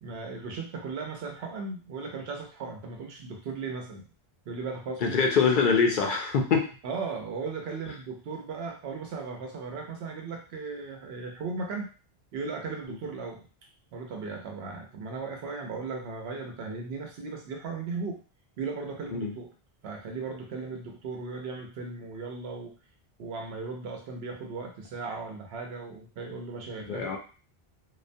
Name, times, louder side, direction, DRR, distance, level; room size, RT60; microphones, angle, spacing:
voice 1, 0.0-4.0 4.5-5.2 6.8-11.9 12.3-13.4 13.9-18.2 18.6-19.5 19.8-22.7 23.2-27.2, right 4 dB, 80° right, 2 dB, 0.9 m, -37 dB
voice 2, 5.0-6.7 19.1-19.3 26.9-27.2, left 5 dB, 60° left, 2 dB, 0.6 m, -24 dB
2.4 x 2.1 x 2.6 m, 0.36 s
omnidirectional pair, 1.0 m